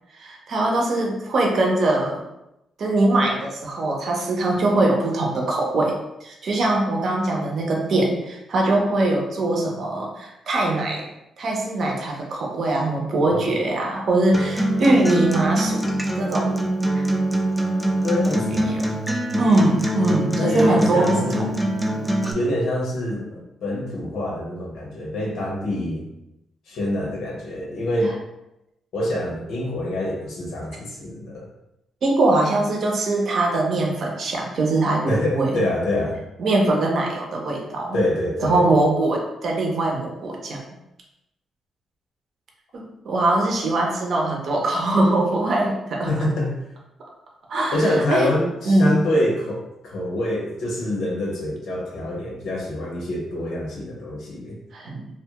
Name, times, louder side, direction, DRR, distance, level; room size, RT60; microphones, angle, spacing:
voice 1, 0.1-2.2 2.8-11.1 11.4-15.8 16.2-16.6 16.9-17.1 18.7-18.9 19.4-21.4 32.0-35.6 36.4-38.0 38.4-40.6 42.7-46.3 47.5-48.3 48.7-49.0 54.7-55.1, right 2 dB, 60° right, -1 dB, 0.6 m, -22 dB
Acoustic guitar, 14.3-22.3, right 1 dB, ahead, 0.4 m, -23 dB
voice 2, 18.0-18.8 20.3-21.6 22.3-26.0 26.7-28.2 28.9-31.5 35.1-36.2 37.9-38.6 46.1-46.6 47.7-54.6, left 1 dB, 80° left, -3 dB, 0.9 m, -25 dB
2.5 x 2.2 x 2.8 m, 0.89 s
cardioid pair, 75°, 0 cm